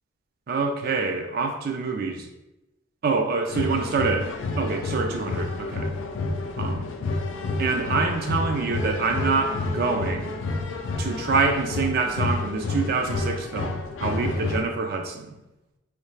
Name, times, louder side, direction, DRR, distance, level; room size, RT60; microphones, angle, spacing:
voice 1, 0.5-2.3 3.0-4.3 4.6-5.9 6.6-6.9 7.6-10.3 11.0-15.4, right 4 dB, 50° right, 4 dB, 0.4 m, -26 dB
sound 1, 3.5-14.6, left 2 dB, 80° left, 0.4 m, -29 dB
3.2 x 2.3 x 3.2 m, 0.95 s
head